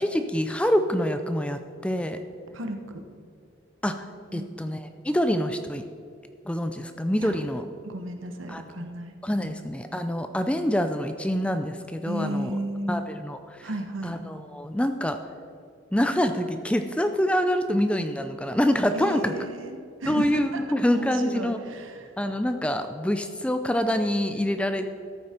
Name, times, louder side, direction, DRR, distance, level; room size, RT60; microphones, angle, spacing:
voice 1, 0.0-2.2 3.8-4.0 4.3-5.8 6.5-7.6 8.5-8.6 9.2-12.5 12.9-13.7 14.0-15.2 15.9-19.3 20.1-21.6 22.2-24.9, equal, 5° left, 8 dB, 0.4 m, -26 dB
voice 2, 2.5-3.0 4.3-4.5 7.2-7.4 7.8-9.1 12.0-13.0 13.6-14.2 18.9-20.6 20.9-22.1, right 1 dB, 80° right, 6 dB, 1.1 m, -34 dB
14.0 x 8.6 x 4.4 m, 2.4 s
head